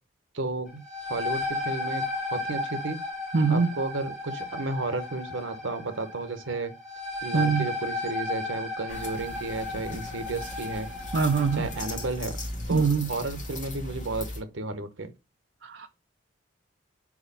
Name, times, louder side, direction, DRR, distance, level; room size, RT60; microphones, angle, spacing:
voice 1, 0.3-3.0 3.5-6.7 7.2-10.9 11.6-12.4 12.7-15.1, right 3 dB, 85° right, 1.0 m, -33 dB
sound 1, 0.7-12.1, left 2 dB, ahead, 2.5 m, -34 dB
voice 2, 3.3-3.7 7.3-7.7 11.1-11.7 12.7-13.1 15.6-15.9, right 5 dB, 60° right, 0.5 m, -23 dB
sound 2, 8.9-14.4, left 1 dB, 40° left, 2.0 m, -38 dB
4.8 x 4.4 x 5.5 m
head